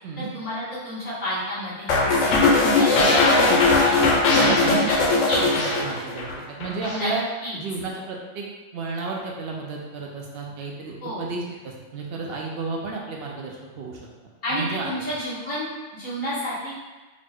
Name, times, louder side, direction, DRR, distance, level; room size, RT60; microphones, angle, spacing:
voice 1, 0.2-4.0 4.8-5.0 5.3-5.4 6.9-7.1 7.4-7.6 11.0-11.2 14.4-16.8, equal, 40° left, -13 dB, 1.6 m, -30 dB
sound 1, 1.9-6.3 6.6-7.0, left 3 dB, 90° left, 1.0 m, -19 dB
voice 2, 2.6-5.1 5.4-7.2 7.6-8.5 8.7-14.0 14.5-14.9, right 3 dB, 65° right, -1 dB, 0.7 m, -32 dB
3.7 x 2.1 x 3.5 m, 1.2 s
omnidirectional pair, 1.3 m